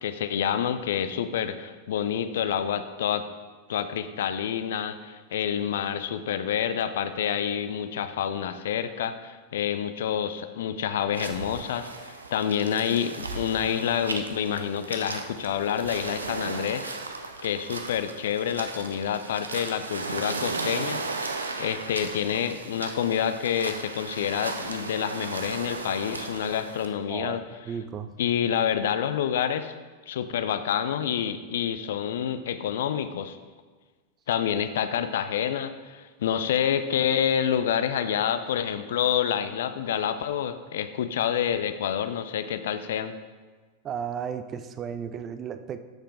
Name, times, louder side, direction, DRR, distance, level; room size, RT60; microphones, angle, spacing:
voice 1, 0.0-3.3 3.7-16.9 17.4-27.4 28.2-29.7 30.1-33.4 34.3-43.1, left 9 dB, 60° left, 11 dB, 0.5 m, -28 dB
sound 1, 11.1-26.9, right 3 dB, 75° right, 0.7 m, -36 dB
voice 2, 27.1-28.1 43.8-45.8, right 7 dB, 30° right, 10 dB, 0.6 m, -34 dB
13.0 x 6.6 x 3.6 m, 1.4 s
figure-of-eight pair, 90°, 0 cm